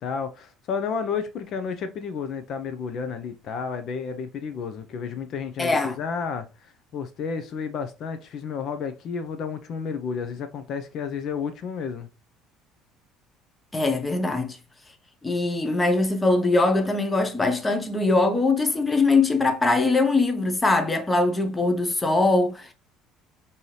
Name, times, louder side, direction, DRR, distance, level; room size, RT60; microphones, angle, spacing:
voice 1, 0.0-12.1, left 6 dB, 50° left, 0.6 m, -31 dB
voice 2, 5.6-6.0 13.7-14.6 15.2-22.7, left 3 dB, 15° left, 0.7 m, -22 dB
5.4 x 2.7 x 3.1 m
cardioid pair, 135°, 0 cm